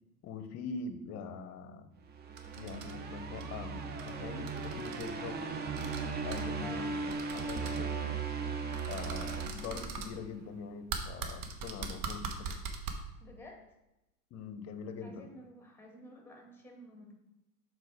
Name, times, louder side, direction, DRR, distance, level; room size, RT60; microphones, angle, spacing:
voice 1, 0.2-1.9 2.6-5.4 6.2-8.1 8.9-12.6 14.3-15.3, left 5 dB, 35° left, 9 dB, 0.9 m, -43 dB
sound 1, 2.1-10.4, right 4 dB, 20° right, 0.7 m, -38 dB
sound 2, 2.4-2.9 3.3-3.4 4.0-4.1 4.4-5.1 5.8-6.0 6.3-6.4 7.1-7.8 8.7-10.1 10.9-12.9, right 5 dB, 50° right, 1.3 m, -40 dB
voice 2, 13.2-13.6 15.0-17.1, left 1 dB, 5° left, 1 dB, 1.8 m, -51 dB
6.6 x 4.5 x 4.9 m, 0.92 s
hypercardioid pair, 95°, 46 cm